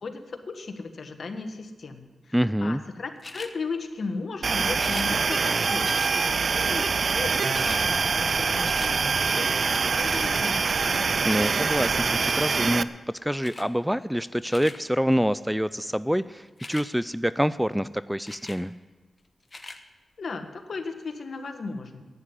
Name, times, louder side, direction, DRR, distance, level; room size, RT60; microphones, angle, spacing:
voice 1, 0.0-11.1 20.2-22.0, left 4 dB, 65° left, 6 dB, 1.5 m, -36 dB
voice 2, 2.3-2.8 11.2-12.9 13.2-18.7, equal, 5° right, 16 dB, 0.4 m, -26 dB
sound 1, 3.2-3.5 4.7-5.1 5.8-6.1 7.1-7.2 7.4-7.8 8.2-8.9 9.9-10.2 11.3-11.6 12.2-12.5 13.4-13.7 14.3-14.8 16.5-16.9 18.3-18.6 19.4-19.8 20.5-20.6, left 2 dB, 35° left, 1.2 m, -42 dB
sound 2, 4.4-12.8, right 5 dB, 60° right, 0.5 m, -24 dB
11.5 x 9.8 x 9.7 m, 1.3 s
cardioid pair, 60°, 0 cm